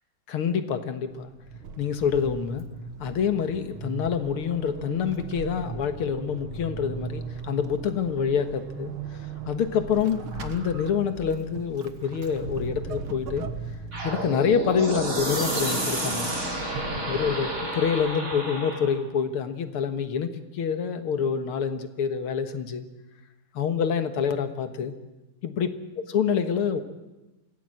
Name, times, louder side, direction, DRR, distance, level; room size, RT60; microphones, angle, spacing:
voice 1, 0.3-1.3 1.8-2.6 3.0-8.9 9.5-13.5 14.0-16.3 17.1-22.9 23.5-24.9 25.4-25.7 26.1-26.8, left 7 dB, 85° left, 9 dB, 2.3 m, -27 dB
Vehicle / Accelerating revving vroom / Squeak, 1.1-18.3, right 5 dB, 75° right, 2.2 m, -38 dB
sound 1, 13.9-19.0, right 1 dB, 35° right, 4.1 m, -30 dB
25.0 x 16.5 x 7.8 m, 1.0 s
omnidirectional pair, 2.4 m